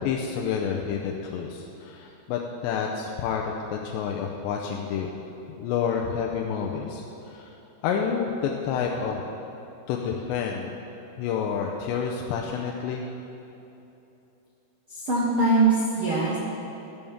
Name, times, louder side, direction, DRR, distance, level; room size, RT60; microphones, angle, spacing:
voice 1, 0.0-5.1 5.6-7.5 7.8-9.2 9.9-10.8 11.2-13.0, left 7 dB, 90° left, 0 dB, 2.9 m, -29 dB
voice 2, 14.9-16.4, right 3 dB, 85° right, -6 dB, 1.1 m, -22 dB
14.5 x 12.5 x 3.6 m, 2.9 s
omnidirectional pair, 5.0 m